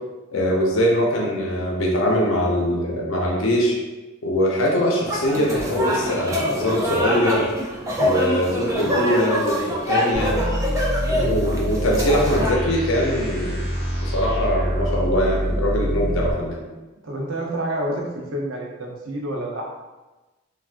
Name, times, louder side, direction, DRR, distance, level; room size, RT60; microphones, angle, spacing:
voice 1, 0.3-3.8 4.2-7.5 8.0-10.4 11.1-13.6 14.0-16.6, equal, 80° left, -2 dB, 0.6 m, -22 dB
sound 1, 5.1-12.5, equal, 15° right, 0.3 m, -25 dB
sound 2, 10.1-16.3, equal, 5° left, 0.8 m, -25 dB
voice 2, 11.1-11.5 17.0-19.6, right 1 dB, 80° right, -1 dB, 0.6 m, -29 dB
3.3 x 2.4 x 2.4 m, 1.1 s
head